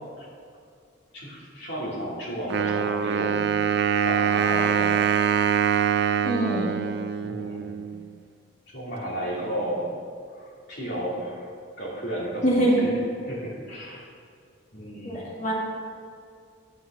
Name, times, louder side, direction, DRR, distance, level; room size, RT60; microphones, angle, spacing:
voice 1, 1.1-3.5 4.0-5.0 7.2-7.9 8.7-10.0 10.3-11.5 11.8-13.0 13.3-14.0 14.7-15.4, right 1 dB, 55° left, -5 dB, 2.5 m, -33 dB
Wind instrument woodwind instrument, 2.5-8.1, right 8 dB, 50° right, 0.3 m, -24 dB
voice 2, 6.2-6.8 12.4-12.8 15.0-15.5, right 1 dB, 35° left, -4 dB, 1.8 m, -23 dB
9.2 x 6.4 x 6.1 m, 2.3 s
head